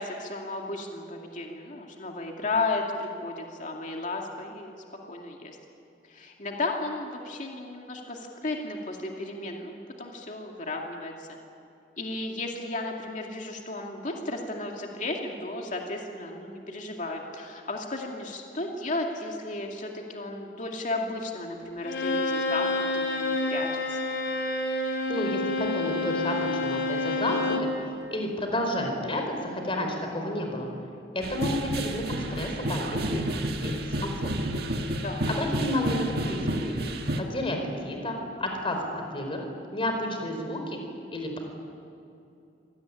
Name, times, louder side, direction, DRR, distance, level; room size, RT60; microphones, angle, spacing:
voice 1, 0.0-4.7 5.1-5.6 6.1-9.7 10.0-11.4 12.0-24.0 35.0-35.2, left 2 dB, 45° left, 1 dB, 2.5 m, -34 dB
Bowed string instrument, 21.8-27.8, left 2 dB, 75° left, 3.4 m, -28 dB
voice 2, 25.1-27.7 28.1-30.7 31.1-33.2 33.6-34.3 35.3-36.9 37.2-37.6 37.8-38.8 39.1-39.4 39.7-40.8 41.1-41.4, left 1 dB, 30° left, 3 dB, 4.5 m, -31 dB
sound 1, 31.2-37.2, right 1 dB, 65° right, 2.0 m, -30 dB
25.0 x 18.5 x 9.9 m, 2.7 s
head